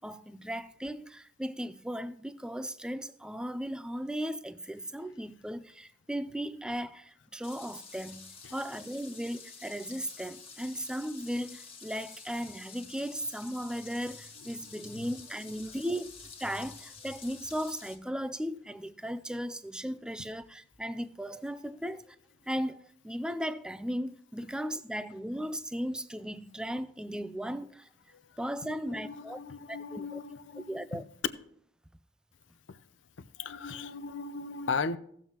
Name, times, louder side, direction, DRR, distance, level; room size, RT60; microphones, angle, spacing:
voice 1, 0.0-22.2 22.5-27.9 28.4-29.4 29.7-30.2 30.7-31.1, equal, 5° right, 0.4 m, -36 dB
sound 1, 7.4-18.0, left 5 dB, 30° left, 1.6 m, -49 dB
voice 2, 28.6-30.7 32.7-32.8 33.4-35.0, left 4 dB, 80° left, 0.6 m, -37 dB
17.5 x 7.3 x 2.9 m
head